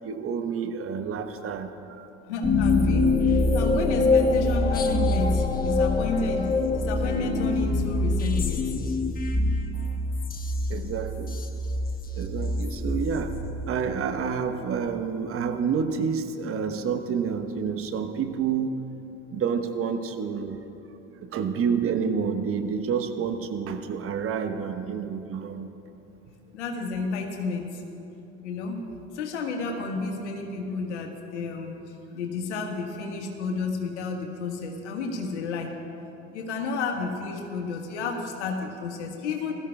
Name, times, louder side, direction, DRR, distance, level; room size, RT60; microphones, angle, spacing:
voice 1, 0.0-2.1 10.7-11.4 12.1-13.3 13.7-18.8 19.3-20.6 21.2-25.7, right 6 dB, 40° right, 7 dB, 1.1 m, -29 dB
voice 2, 2.3-8.8 26.5-27.8 28.4-28.9 29.1-31.8 32.1-35.7 36.3-39.5, left 4 dB, 70° left, 2 dB, 1.6 m, -31 dB
sound 1, 2.4-14.0, left 2 dB, 25° left, 1.2 m, -25 dB
21.0 x 13.5 x 2.3 m, 2.9 s
figure-of-eight pair, 65°, 36 cm